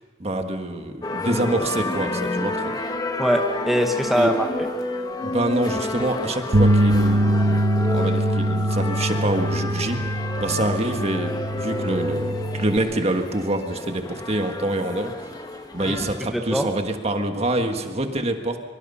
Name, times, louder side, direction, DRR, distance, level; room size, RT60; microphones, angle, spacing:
voice 1, 0.2-2.7 4.1-4.3 5.2-7.6 7.9-10.0 10.4-15.1 15.7-18.6, right 1 dB, 35° right, 5 dB, 1.6 m, -26 dB
sound 1, 1.0-16.2, left 2 dB, 20° left, 1.3 m, -30 dB
voice 2, 3.2-4.7 15.9-16.7, equal, ahead, 2 dB, 1.1 m, -22 dB
sound 2, 6.5-12.8, right 1 dB, 50° right, 1.0 m, -23 dB
24.5 x 23.5 x 5.6 m, 1.4 s
head